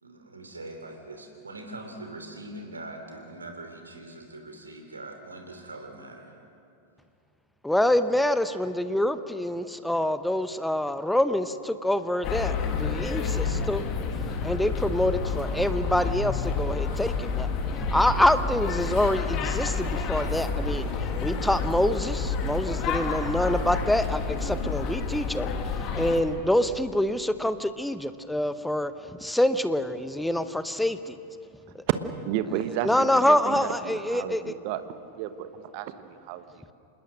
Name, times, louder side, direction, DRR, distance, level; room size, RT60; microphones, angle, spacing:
voice 1, 0.0-6.3, right 2 dB, 75° right, 5 dB, 3.1 m, -42 dB
voice 2, 7.6-13.8 14.4-17.5 17.8-31.2 31.7-31.8 32.8-34.5, left 1 dB, 5° left, 12 dB, 0.9 m, -26 dB
sound 1, 12.2-26.2, left 4 dB, 35° left, 2.2 m, -29 dB
voice 3, 32.2-34.8 35.1-36.7, right 10 dB, 45° right, 11 dB, 1.2 m, -33 dB
26.5 x 20.5 x 6.5 m, 2.6 s
figure-of-eight pair, 90°, 0 cm